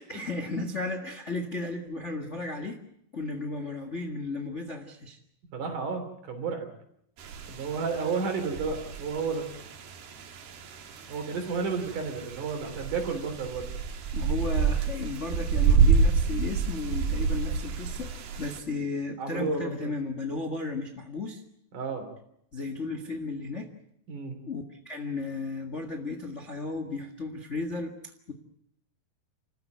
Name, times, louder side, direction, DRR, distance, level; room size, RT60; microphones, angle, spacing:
voice 1, 0.0-2.8 3.1-5.2 14.1-21.4 22.5-23.7 24.5-27.9 28.3-28.4, left 3 dB, 35° left, 6 dB, 1.1 m, -34 dB
voice 2, 5.5-6.7 7.5-9.5 11.1-13.7 19.2-19.9 21.7-22.1 24.1-24.4, right 4 dB, 60° right, 6 dB, 4.6 m, -32 dB
sound 1, 7.2-18.6, right 5 dB, 85° right, 3.9 m, -28 dB
30.0 x 14.5 x 9.3 m, 0.75 s
omnidirectional pair, 4.2 m